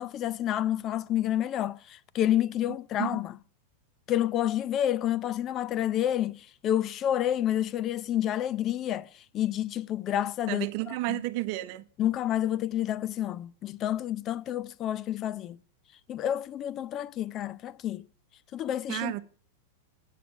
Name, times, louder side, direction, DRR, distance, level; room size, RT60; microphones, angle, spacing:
voice 1, 0.0-3.3 4.1-10.7 11.1-11.2 12.0-15.6 16.1-18.0 18.5-19.2, left 11 dB, 35° left, 0.5 m, -29 dB
voice 2, 2.7-3.2 10.5-11.8 18.9-19.2, right 19 dB, 55° right, 0.8 m, -32 dB
8.4 x 6.9 x 5.9 m
hypercardioid pair, 105°, 0 cm